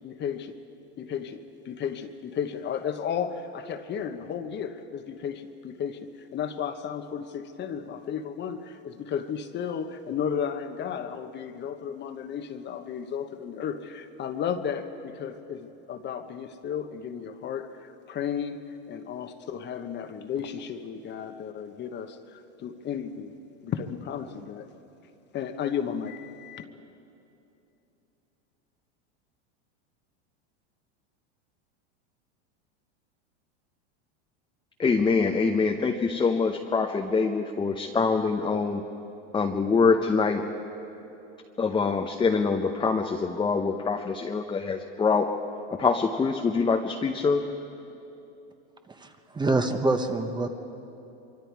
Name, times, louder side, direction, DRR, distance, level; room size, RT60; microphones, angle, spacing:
voice 1, 0.0-0.6 1.0-23.4 23.6-24.7 25.3-26.6, left 7 dB, 30° left, 8 dB, 1.2 m, -34 dB
voice 2, 34.8-38.8 39.3-40.4 41.6-45.4 45.7-47.4, left 4 dB, 15° left, 3 dB, 0.8 m, -24 dB
voice 3, 49.0-50.5, right 2 dB, 15° right, 6 dB, 1.1 m, -26 dB
25.0 x 24.0 x 4.7 m, 2.9 s
supercardioid pair, 125°, 33 cm